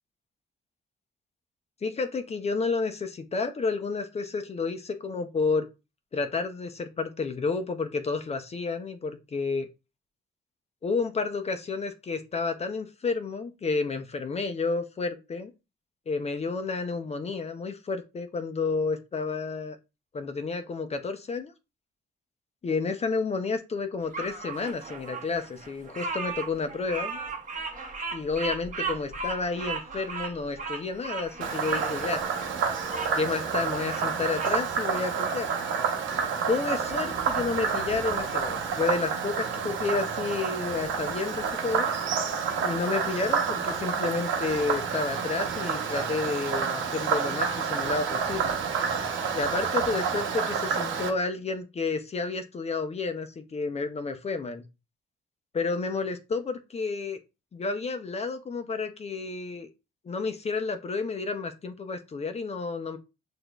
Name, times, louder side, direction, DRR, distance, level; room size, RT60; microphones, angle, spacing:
voice 1, 1.8-5.7 6.1-9.7 10.8-15.5 16.1-19.8 20.1-21.5 22.6-27.2 28.1-32.2 33.2-35.5 36.5-41.9 42.6-48.5 49.3-54.6 55.5-57.2 57.5-59.7 60.0-63.0, left 4 dB, 30° left, 7 dB, 0.6 m, -30 dB
Bird vocalization bird call bird song, 24.1-33.1 33.6-34.6, right 4 dB, 40° right, 0.9 m, -36 dB
Frog, 31.4-51.1, right 6 dB, 75° right, 0.9 m, -29 dB
6.2 x 2.5 x 2.3 m, 0.27 s
cardioid pair, 90°, 20 cm